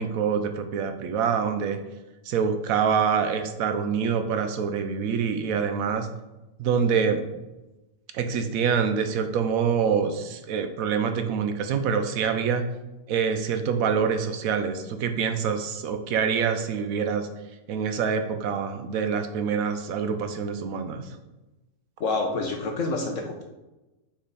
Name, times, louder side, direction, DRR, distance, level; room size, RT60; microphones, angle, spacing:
voice 1, 0.0-1.8 2.3-6.1 6.6-7.2 8.1-12.6 13.1-17.3 17.7-21.1, right 6 dB, 70° right, 8 dB, 1.0 m, -25 dB
voice 2, 22.0-23.4, left 3 dB, 60° left, 2 dB, 1.0 m, -28 dB
6.2 x 4.0 x 4.0 m, 1.0 s
omnidirectional pair, 1.6 m